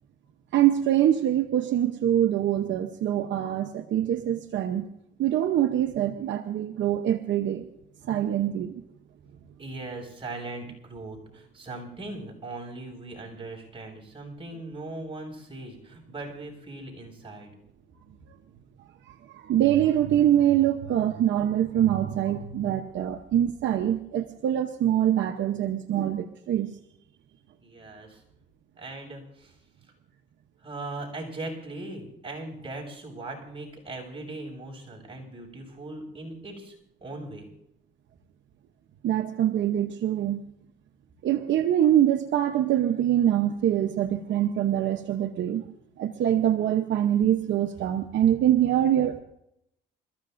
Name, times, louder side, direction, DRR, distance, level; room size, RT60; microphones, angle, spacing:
voice 1, 0.5-4.9 5.2-7.7 8.1-8.8 19.1-26.7 39.0-40.4 41.2-45.6 46.0-49.2, right 11 dB, 70° right, 5 dB, 0.9 m, -24 dB
voice 2, 9.6-17.5 27.6-28.2 28.8-29.6 30.6-36.7 37.0-37.5, right 2 dB, 25° right, 0 dB, 6.7 m, -39 dB
27.5 x 14.5 x 2.6 m, 0.78 s
cardioid pair, 90°, 20 cm